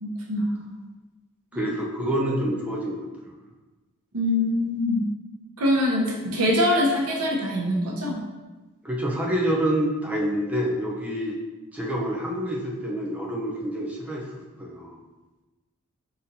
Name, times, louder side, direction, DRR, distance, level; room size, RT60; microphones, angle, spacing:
voice 1, 0.0-0.7 1.5-1.7 4.1-5.0 5.6-8.2, left 1 dB, 90° right, -3 dB, 0.8 m, -24 dB
voice 2, 1.5-3.3 8.8-11.4 11.7-14.3 14.6-15.0, equal, 5° right, -3 dB, 0.6 m, -27 dB
4.0 x 4.0 x 2.7 m, 1.2 s
head